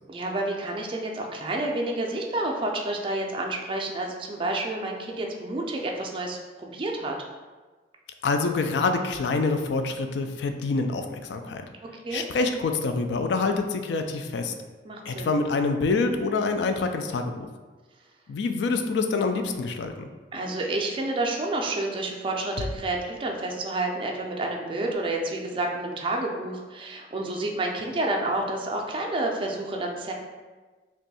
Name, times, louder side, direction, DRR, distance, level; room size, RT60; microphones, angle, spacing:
voice 1, 0.1-7.2 12.0-12.2 14.8-15.4 20.3-30.1, right 2 dB, 30° right, 0 dB, 0.4 m, -29 dB
voice 2, 8.2-11.6 12.1-14.5 15.1-17.5 18.3-20.1, left 3 dB, 70° left, 6 dB, 0.3 m, -26 dB
2.6 x 2.3 x 4.0 m, 1.3 s
head